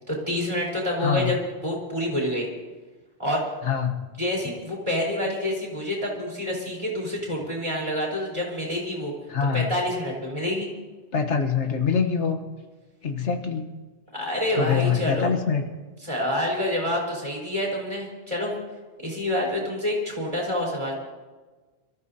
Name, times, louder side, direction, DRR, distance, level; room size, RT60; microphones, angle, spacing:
voice 1, 0.1-2.5 3.2-3.5 4.2-9.1 9.5-10.7 14.1-15.3 16.0-18.5 19.0-20.9, left 1 dB, 25° right, -3 dB, 4.4 m, -27 dB
voice 2, 1.0-1.3 3.6-4.1 9.3-9.7 11.1-12.4 13.0-13.7 14.6-15.6, left 6 dB, 85° left, 5 dB, 1.5 m, -24 dB
27.5 x 14.0 x 2.8 m, 1.3 s
omnidirectional pair, 1.2 m